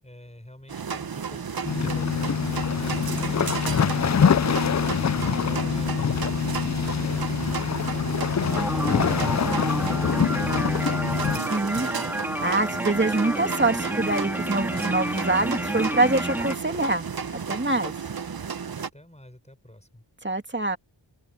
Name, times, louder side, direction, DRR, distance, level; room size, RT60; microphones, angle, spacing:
voice 1, 0.0-4.4 5.1-7.5 7.9-12.1 18.7-20.0, left 1 dB, 15° left, 5.7 m, -47 dB
sound 1, 0.7-18.9, right 6 dB, 50° right, 0.9 m, -33 dB
sound 2, 1.6-11.4, left 7 dB, 40° left, 0.5 m, -25 dB
sound 3, 8.5-16.6, equal, 5° right, 1.9 m, -30 dB
voice 2, 11.5-12.1 12.4-17.1 17.3-17.9 20.2-20.8, right 2 dB, 25° right, 2.4 m, -25 dB
open air
wide cardioid pair, 70°, 46 cm